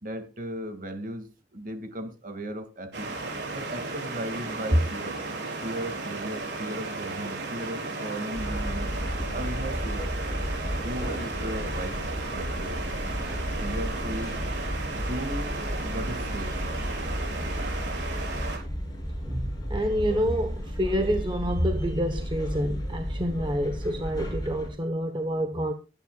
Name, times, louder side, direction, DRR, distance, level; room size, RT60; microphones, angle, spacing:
voice 1, 0.0-3.1 3.5-5.2 5.6-8.9 9.3-10.1 10.7-12.0 12.3-12.9 13.6-14.4 14.9-16.6, right 1 dB, 50° right, 2.2 m, -36 dB
sound 1, 2.9-18.6, right 3 dB, 65° right, 4.5 m, -34 dB
sound 2, 8.3-24.7, equal, 20° left, 6.7 m, -33 dB
voice 2, 19.2-25.7, equal, 25° right, 1.1 m, -27 dB
22.5 x 10.0 x 2.4 m
head